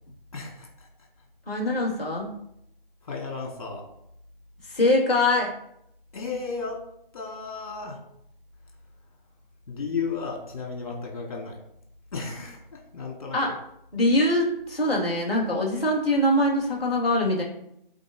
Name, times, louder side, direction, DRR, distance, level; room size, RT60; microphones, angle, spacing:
voice 1, 0.3-0.9 1.8-2.0 3.0-3.9 6.1-6.9 7.1-8.0 9.7-11.6 12.1-13.6, left 4 dB, 40° left, -1 dB, 2.4 m, -34 dB
voice 2, 1.5-2.3 4.7-5.5 13.3-13.5 13.9-17.4, left 1 dB, ahead, -19 dB, 2.0 m, -23 dB
13.0 x 4.5 x 3.2 m, 0.76 s
figure-of-eight pair, 170°, 29 cm